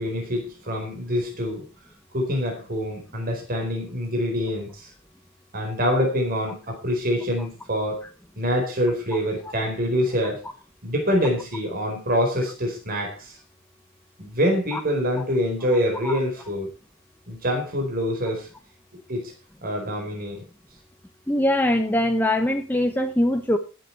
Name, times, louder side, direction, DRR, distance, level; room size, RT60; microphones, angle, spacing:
voice 1, 0.0-1.6 2.1-4.9 5.5-8.0 8.4-10.4 10.8-13.4 14.2-16.7 17.3-18.5 19.1-19.3 19.6-20.4, equal, 45° right, 2 dB, 4.4 m, -25 dB
voice 2, 21.3-23.6, left 1 dB, 10° left, 4 dB, 0.9 m, -22 dB
20.0 x 7.9 x 4.5 m, 0.32 s
head